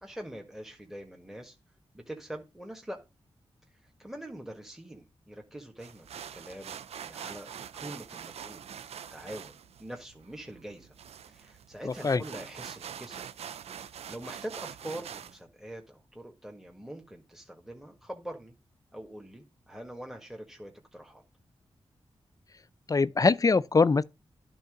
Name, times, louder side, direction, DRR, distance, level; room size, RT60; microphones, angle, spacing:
voice 1, 0.0-1.6 1.9-3.0 3.8-8.6 9.1-11.0 11.3-13.2 14.1-18.5 18.9-21.2, right 1 dB, 5° right, 1.6 m, -44 dB
sound 1, 5.8-15.4, right 8 dB, 80° right, 0.4 m, -44 dB
voice 2, 11.9-12.2 22.9-24.0, left 4 dB, 35° left, 0.4 m, -23 dB
10.5 x 3.8 x 5.1 m
cardioid pair, 50°, 10 cm